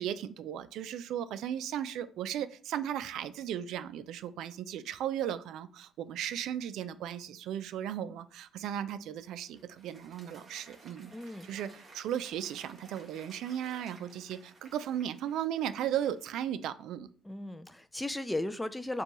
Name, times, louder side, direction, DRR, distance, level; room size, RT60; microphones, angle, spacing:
voice 1, 0.0-11.1 11.4-17.1, right 10 dB, 80° right, 0.3 m, -36 dB
Applause, 9.0-16.6, right 2 dB, 35° right, 1.6 m, -57 dB
voice 2, 11.1-11.6 17.2-19.0, left 1 dB, 10° left, 0.3 m, -36 dB
6.8 x 2.3 x 3.0 m
cardioid pair, 85°, 0 cm